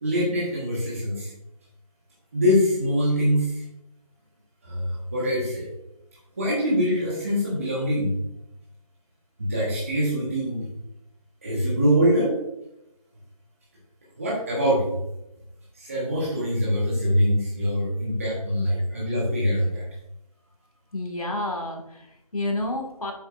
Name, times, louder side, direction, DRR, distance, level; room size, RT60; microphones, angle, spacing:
voice 1, 0.0-1.3 2.3-3.6 4.6-5.7 6.4-8.1 9.4-10.7 11.4-12.4 14.2-15.0 15.7-19.8, equal, 20° right, -6 dB, 1.3 m, -24 dB
voice 2, 20.9-23.1, left 1 dB, 65° left, 2 dB, 2.0 m, -30 dB
8.3 x 6.4 x 2.5 m, 0.85 s
figure-of-eight pair, 170°, 19 cm